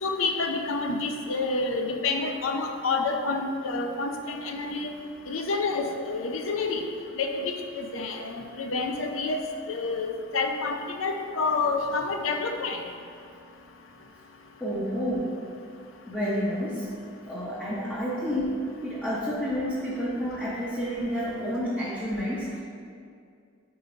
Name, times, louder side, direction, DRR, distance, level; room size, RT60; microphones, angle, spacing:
voice 1, 0.0-4.9 5.3-6.8 7.2-9.4 9.7-12.8, left 3 dB, 85° left, 4 dB, 0.6 m, -28 dB
voice 2, 14.6-15.4 16.1-16.9 17.3-22.6, equal, 10° left, -9 dB, 0.7 m, -30 dB
4.8 x 4.0 x 5.0 m, 2.3 s
head